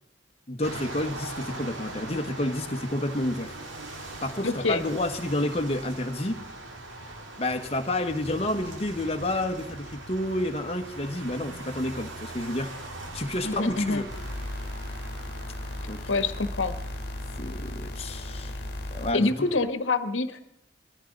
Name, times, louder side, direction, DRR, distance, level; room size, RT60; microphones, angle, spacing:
voice 1, 0.5-3.6 4.2-6.4 7.4-12.7 13.1-14.1 15.9-16.0 17.4-18.5 18.9-19.5, left 1 dB, 30° left, 5 dB, 1.4 m, -30 dB
sound 1, 0.6-19.7, right 2 dB, 85° right, 2.1 m, -41 dB
voice 2, 4.4-4.8 13.4-14.0 16.1-16.7 19.1-20.4, left 3 dB, 80° left, 10 dB, 1.2 m, -26 dB
sound 2, 14.1-19.1, left 1 dB, 55° left, 1.6 m, -36 dB
20.5 x 14.5 x 3.9 m, 0.84 s
head